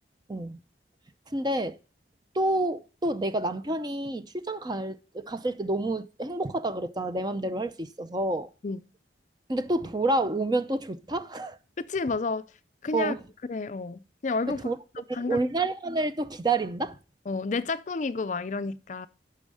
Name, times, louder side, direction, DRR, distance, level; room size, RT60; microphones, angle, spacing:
voice 1, 0.3-0.6 1.3-1.8 2.3-8.5 9.5-11.6 12.9-13.2 14.5-14.8 15.1-17.0, right 2 dB, 25° right, 0.6 m, -29 dB
voice 2, 11.9-12.5 12.8-13.2 13.5-14.6 15.0-15.4 17.3-19.1, left 4 dB, 45° left, 0.4 m, -30 dB
8.8 x 5.5 x 6.3 m
head